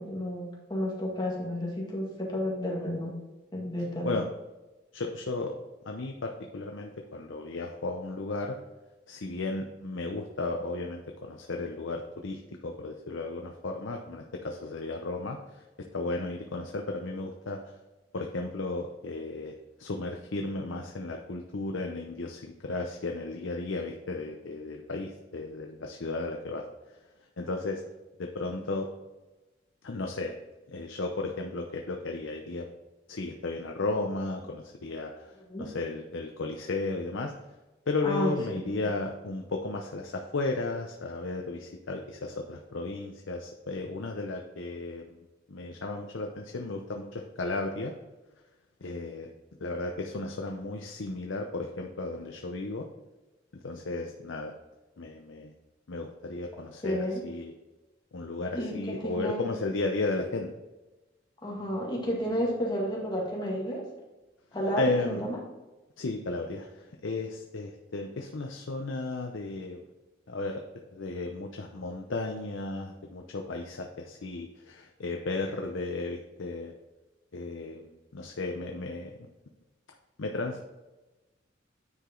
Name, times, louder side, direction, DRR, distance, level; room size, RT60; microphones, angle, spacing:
voice 1, 0.0-3.1 3.5-4.2 35.5-35.7 38.0-38.6 56.8-57.2 58.5-59.5 61.4-63.9 64.5-65.4, equal, 20° left, -3 dB, 1.8 m, -31 dB
voice 2, 4.9-5.5 5.8-8.6 9.1-15.6 15.9-17.8 18.1-27.0 27.4-27.8 28.2-28.9 29.8-30.3 30.7-32.7 33.1-37.3 37.9-45.2 45.5-47.9 48.8-49.3 49.6-52.9 53.5-54.5 55.0-55.5 55.9-57.5 58.1-60.5 64.7-65.2 66.0-69.8 70.3-70.6 70.9-76.7 77.3-79.3 80.2-80.6, left 2 dB, 80° left, 2 dB, 0.7 m, -34 dB
9.6 x 4.9 x 3.8 m, 1.1 s
head